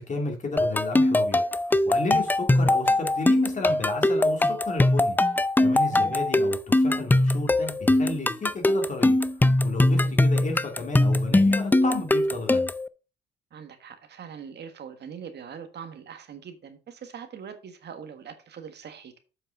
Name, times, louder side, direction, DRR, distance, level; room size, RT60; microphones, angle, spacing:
voice 1, 0.0-5.2 5.6-9.2 9.6-12.7, left 3 dB, 40° left, 2.6 m, -33 dB
sound 1, 0.6-12.9, left 1 dB, 10° left, 0.4 m, -21 dB
voice 2, 13.5-19.2, right 7 dB, 60° right, 1.5 m, -42 dB
7.8 x 5.5 x 4.8 m
cardioid pair, 90°, 20 cm